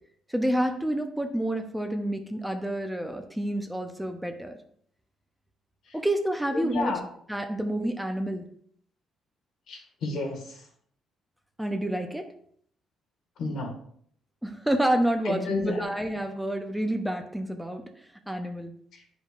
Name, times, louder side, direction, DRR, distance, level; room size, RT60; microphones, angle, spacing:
voice 1, 0.3-4.6 5.9-6.9 7.3-8.5 11.6-12.3 14.4-18.7, right 1 dB, 5° right, 5 dB, 0.7 m, -29 dB
voice 2, 6.5-7.0 9.7-10.6 13.4-13.8 15.3-15.9 18.9-19.0, left 3 dB, 75° left, 1 dB, 1.7 m, -31 dB
8.9 x 5.2 x 2.5 m, 0.64 s
cardioid pair, 105°, 0 cm